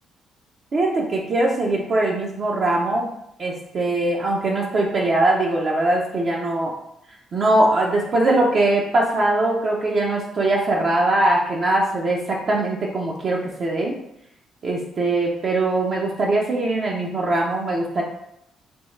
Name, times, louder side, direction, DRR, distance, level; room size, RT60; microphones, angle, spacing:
voice 1, 0.7-3.1 3.4-6.8 7.3-13.9 14.6-18.0, right 2 dB, 50° right, -2 dB, 0.6 m, -21 dB
3.4 x 3.1 x 3.1 m, 0.80 s
cardioid pair, 90°, 0 cm